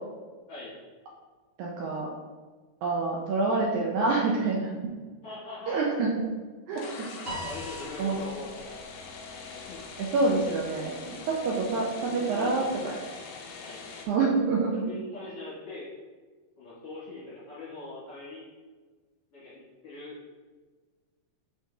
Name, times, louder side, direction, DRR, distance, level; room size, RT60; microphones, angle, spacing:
voice 1, 1.6-2.1 2.8-4.7 5.7-6.2 6.7-6.8 8.0-8.2 10.0-11.0 11.3-13.0 14.1-14.7, right 3 dB, 75° right, -2 dB, 2.0 m, -26 dB
voice 2, 5.2-5.8 7.4-8.7 9.7-9.8 12.0-12.7 13.6-13.8 14.8-15.9 16.6-18.4 19.3-20.2, left 2 dB, 55° left, -11 dB, 2.9 m, -41 dB
sound 1, 6.7-14.1, left 4 dB, 80° left, 1.5 m, -43 dB
Piano, 7.3-9.7, right 1 dB, 45° right, 1.4 m, -41 dB
6.0 x 5.6 x 2.8 m, 1.4 s
omnidirectional pair, 3.8 m